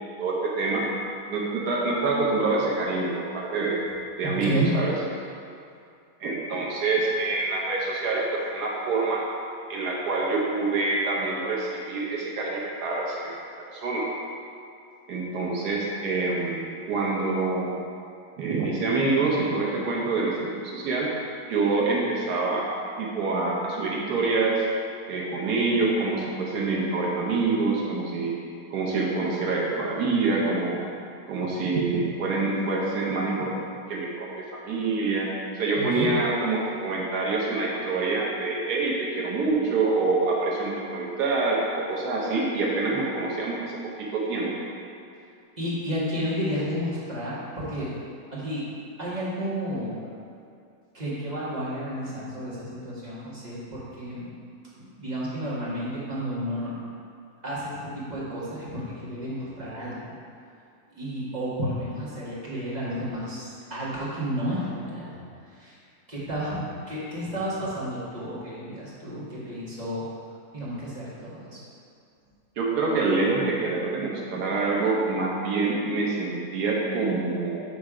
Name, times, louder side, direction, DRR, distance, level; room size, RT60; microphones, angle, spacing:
voice 1, 0.2-0.8 1.3-4.9 6.2-9.2 9.7-13.5 13.7-14.1 15.1-17.8 18.4-21.1 21.5-22.7 23.0-24.7 25.1-28.3 28.7-30.8 31.3-35.3 35.5-44.5 72.6-77.6, right 3 dB, 85° right, -4 dB, 1.4 m, -26 dB
voice 2, 4.2-4.7 35.8-36.1 45.6-47.9 48.3-48.7 49.0-50.0 50.9-54.3 54.7-56.8 57.4-60.0 60.9-65.2 65.5-65.7 66.1-70.0 70.5-71.6, equal, 25° right, -9 dB, 1.5 m, -31 dB
7.2 x 3.2 x 4.8 m, 2.4 s
omnidirectional pair, 1.7 m